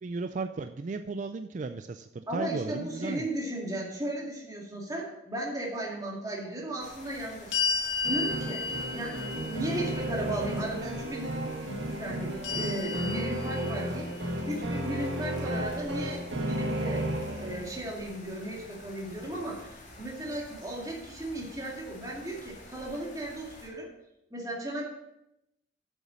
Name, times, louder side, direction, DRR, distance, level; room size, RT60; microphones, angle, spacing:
voice 1, 0.0-3.3, right 4 dB, 45° right, 10 dB, 0.4 m, -35 dB
voice 2, 2.3-7.6 8.0-8.6 8.9-9.2 9.5-11.4 11.6-14.1 14.4-23.9 24.3-24.9, right 1 dB, 20° right, -2 dB, 2.3 m, -36 dB
sound 1, 6.8-23.7, left 2 dB, 40° left, 2.6 m, -50 dB
sound 2, 7.5-10.7 12.4-14.2, left 4 dB, 75° left, 1.5 m, -33 dB
sound 3, 8.0-17.9, right 1 dB, 80° right, 1.6 m, -33 dB
8.2 x 7.0 x 6.3 m, 0.87 s
head